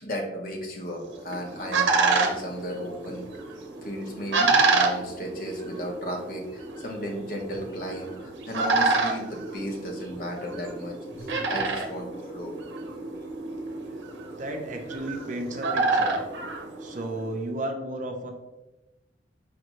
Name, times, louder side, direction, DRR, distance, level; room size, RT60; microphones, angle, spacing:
voice 1, 0.0-3.3 3.8-12.5 14.2-14.4, equal, 50° left, 1 dB, 0.9 m, -35 dB
sound 1, 1.1-17.3, right 3 dB, 90° right, 0.7 m, -28 dB
voice 2, 14.4-16.2 16.8-18.3, right 1 dB, 45° right, 3 dB, 0.5 m, -33 dB
5.0 x 2.6 x 3.0 m, 0.99 s
head